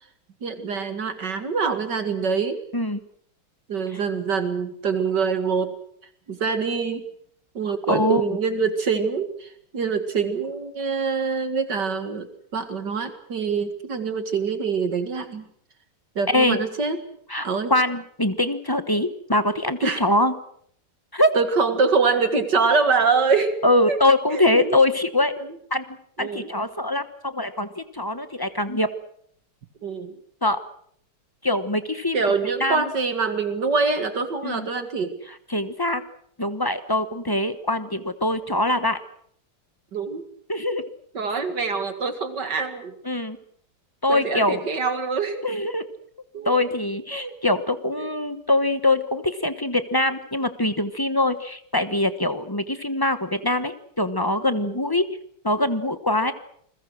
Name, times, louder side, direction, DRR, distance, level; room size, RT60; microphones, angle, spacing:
voice 1, 0.4-2.6 3.7-5.7 6.3-7.0 7.5-15.4 16.2-17.0 17.4-17.7 19.8-20.0 21.3-23.6 23.9-24.0 24.3-24.8 25.4-25.5 26.2-26.5 29.8-30.2 32.1-35.2 39.9-40.3 41.1-42.9 44.1-45.5 46.3-46.6 47.1-47.4 48.0-48.1 54.5-54.8, right 5 dB, 50° right, 9 dB, 2.5 m, -25 dB
voice 2, 7.9-8.4 16.3-16.6 17.3-20.3 21.1-21.3 23.6-25.3 25.7-25.8 26.2-28.9 30.4-30.6 31.4-32.2 32.6-32.9 34.4-34.7 35.5-36.0 36.4-39.0 40.5-40.8 43.0-43.4 44.0-44.7 45.4-45.9 46.4-55.1 55.4-56.3, left 1 dB, 20° left, 11 dB, 0.7 m, -23 dB
28.5 x 21.5 x 6.4 m, 0.66 s
omnidirectional pair, 2.4 m